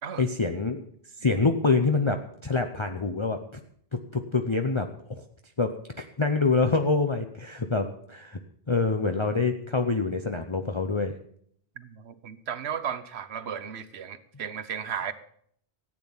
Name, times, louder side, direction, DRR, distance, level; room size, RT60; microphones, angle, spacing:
voice 1, 0.2-0.8 1.2-3.6 3.9-5.2 5.6-8.4 8.7-11.1, left 3 dB, 30° left, 5 dB, 0.8 m, -26 dB
voice 2, 11.8-15.1, right 8 dB, 80° right, 12 dB, 1.2 m, -35 dB
14.5 x 8.7 x 7.2 m, 0.64 s
omnidirectional pair, 1.1 m